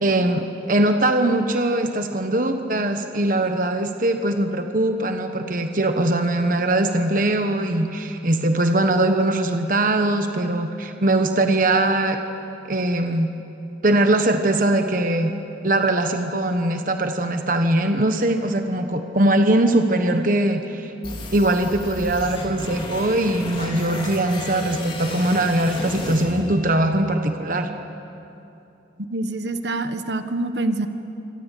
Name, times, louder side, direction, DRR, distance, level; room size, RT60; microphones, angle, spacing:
voice 1, 0.0-12.2 12.7-13.3 13.8-15.3 15.6-20.9 21.3-27.7, right 1 dB, 45° right, 6 dB, 1.3 m, -21 dB
sound 1, 21.0-27.1, left 1 dB, 30° left, 3.5 m, -33 dB
voice 2, 29.1-30.9, right 2 dB, 65° right, 8 dB, 1.4 m, -25 dB
26.0 x 26.0 x 8.4 m, 2.9 s
head